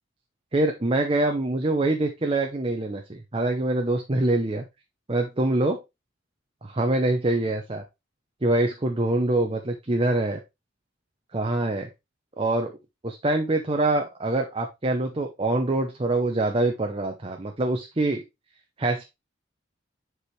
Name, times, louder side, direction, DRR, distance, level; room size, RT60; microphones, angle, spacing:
voice 1, 0.5-4.7 5.1-5.8 6.6-7.8 8.4-10.4 11.3-11.9 12.4-12.8 13.0-18.2 18.8-19.0, right 2 dB, 30° right, 3 dB, 0.7 m, -25 dB
7.2 x 4.8 x 3.2 m, 0.22 s
head